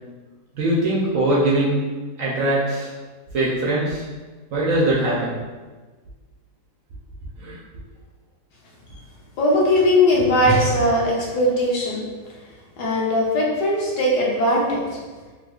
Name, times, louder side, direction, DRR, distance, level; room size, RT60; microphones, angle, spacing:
voice 1, 0.6-1.8 2.2-2.9 3.3-4.0 4.5-5.4 7.4-7.6, right 1 dB, 65° right, -6 dB, 0.9 m, -21 dB
voice 2, 9.4-12.0 12.8-15.0, left 1 dB, 80° left, -3 dB, 1.4 m, -19 dB
3.9 x 2.9 x 2.3 m, 1.3 s
omnidirectional pair, 1.8 m